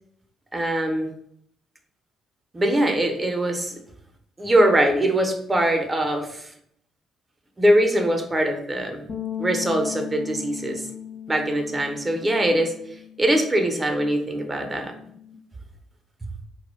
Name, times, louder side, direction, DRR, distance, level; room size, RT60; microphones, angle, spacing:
voice 1, 0.5-1.1 2.5-3.7 4.4-6.5 7.6-9.0 9.4-10.8 11.3-12.7 13.2-14.9, right 1 dB, 25° right, 4 dB, 0.5 m, -22 dB
sound 1, 9.1-15.3, left 9 dB, 45° left, 0.4 m, -38 dB
2.2 x 2.0 x 3.1 m, 0.69 s
supercardioid pair, 65°, 0 cm